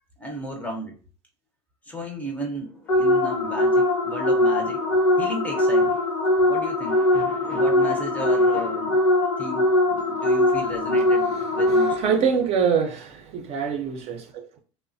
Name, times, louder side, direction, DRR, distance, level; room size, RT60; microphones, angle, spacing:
voice 1, 0.2-1.0 1.9-6.1 6.5-9.0 9.3-12.0, equal, 10° left, 0.5 m, -34 dB
sound 1, 2.9-12.3, left 1 dB, 75° left, 1.0 m, -21 dB
voice 2, 11.7-14.5, right 6 dB, 45° right, 0.5 m, -25 dB
3.0 x 2.1 x 2.6 m
supercardioid pair, 125°, 15 cm